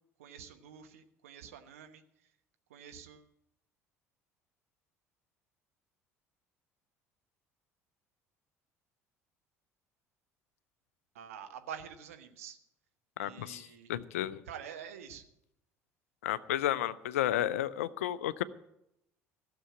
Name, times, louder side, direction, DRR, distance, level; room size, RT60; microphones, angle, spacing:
voice 1, 0.2-2.0 2.7-3.3 11.1-12.6 13.2-13.9 14.5-15.2, right 8 dB, 75° right, 7 dB, 1.1 m, -47 dB
voice 2, 13.2-14.4 16.2-18.4, left 12 dB, 70° left, 17 dB, 0.5 m, -32 dB
15.0 x 6.9 x 8.4 m, 0.81 s
figure-of-eight pair, 60°, 8 cm